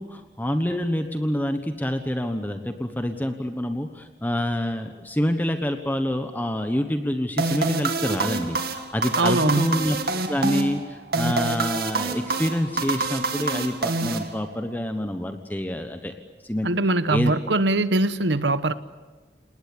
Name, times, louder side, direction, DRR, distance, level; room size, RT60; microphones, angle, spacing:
voice 1, 0.0-10.0 10.2-16.2 16.4-16.7 17.1-17.3, equal, 10° left, 7 dB, 1.1 m, -27 dB
sound 1, 7.4-14.8, right 3 dB, 55° right, 2.3 m, -27 dB
voice 2, 9.2-9.8 16.6-18.7, right 2 dB, 80° right, 13 dB, 1.2 m, -22 dB
29.0 x 19.5 x 8.6 m, 1.4 s
head